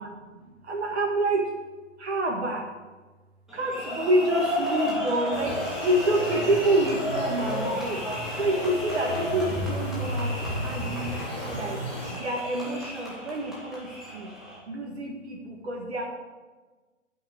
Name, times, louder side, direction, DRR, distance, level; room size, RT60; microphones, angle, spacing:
voice 1, 0.0-1.5 2.0-2.7 3.5-8.0 8.4-11.1 11.5-11.8 12.1-14.3 14.7-16.1, right 1 dB, 55° right, 0 dB, 2.1 m, -28 dB
sound 1, 3.5-14.6, left 1 dB, ahead, 1.6 m, -33 dB
sound 2, 5.3-12.1, equal, 20° left, 3.1 m, -33 dB
8.8 x 5.9 x 8.1 m, 1.3 s
figure-of-eight pair, 135°, 38 cm